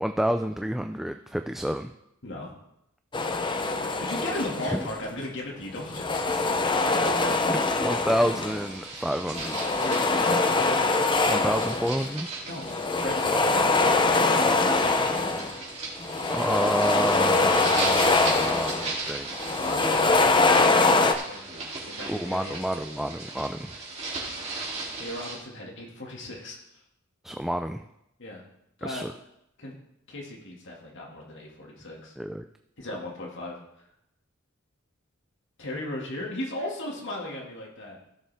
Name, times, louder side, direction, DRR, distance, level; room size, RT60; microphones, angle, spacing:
voice 1, 0.0-1.9 4.7-4.9 7.5-9.6 11.3-12.3 13.3-13.4 13.8-14.1 16.3-19.3 22.1-23.7 27.2-27.8 28.8-29.1 32.2-32.4, equal, ahead, 6 dB, 0.3 m, -29 dB
sound 1, 3.1-5.0 5.8-8.7 9.3-12.1 12.6-15.6 16.0-19.0 19.3-21.1, left 3 dB, 25° left, 0.7 m, -23 dB
voice 2, 4.0-6.8 9.8-10.5 12.4-13.7 14.1-15.4 19.6-22.8 25.0-26.6 28.2-28.4 28.8-29.0 29.6-29.7 30.1-32.1 32.8-33.6 35.6-38.0, left 1 dB, 60° left, -1 dB, 2.2 m, -37 dB
sound 2, 8.3-25.4, right 3 dB, 30° right, 3.0 m, -37 dB
16.0 x 6.9 x 3.5 m, 0.81 s
head